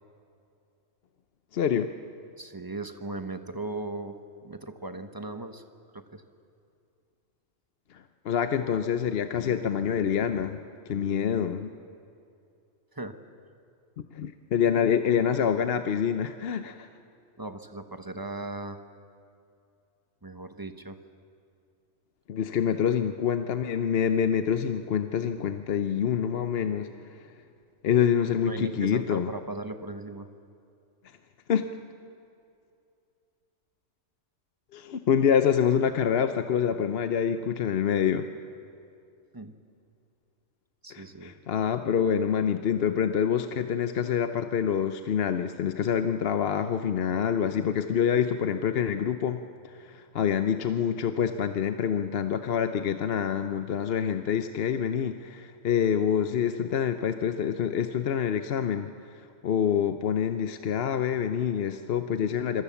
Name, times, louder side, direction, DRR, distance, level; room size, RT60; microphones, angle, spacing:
voice 1, 1.5-1.9 7.9-10.6 10.9-11.7 14.1-16.9 22.3-26.9 27.2-27.3 27.8-29.3 31.5-31.7 34.7-38.3 40.9-58.9 59.4-62.6, left 8 dB, 60° left, 8 dB, 0.9 m, -26 dB
voice 2, 2.4-4.2 4.4-5.6 5.9-6.2 12.9-13.2 17.4-18.8 20.2-21.0 28.5-30.3 39.3-39.5 40.8-41.3, right 2 dB, 20° right, 8 dB, 1.0 m, -37 dB
26.5 x 22.5 x 7.1 m, 2.5 s
omnidirectional pair, 1.3 m